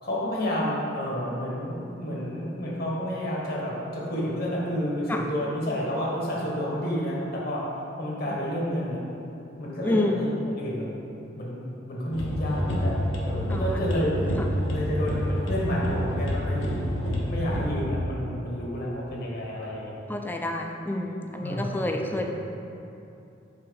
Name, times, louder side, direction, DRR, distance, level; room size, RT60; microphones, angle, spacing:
voice 1, 0.0-7.7 8.0-9.0 9.6-11.0 11.3-14.1 14.7-16.7 17.3-20.0 21.4-22.3, equal, 55° left, -4 dB, 1.2 m, -30 dB
voice 2, 9.8-10.2 13.5-13.9 14.4-14.5 20.1-22.3, left 1 dB, 10° left, 3 dB, 0.3 m, -28 dB
sound 1, 12.1-17.7, equal, 75° left, 1.0 m, -28 dB
5.8 x 3.6 x 5.1 m, 2.7 s
head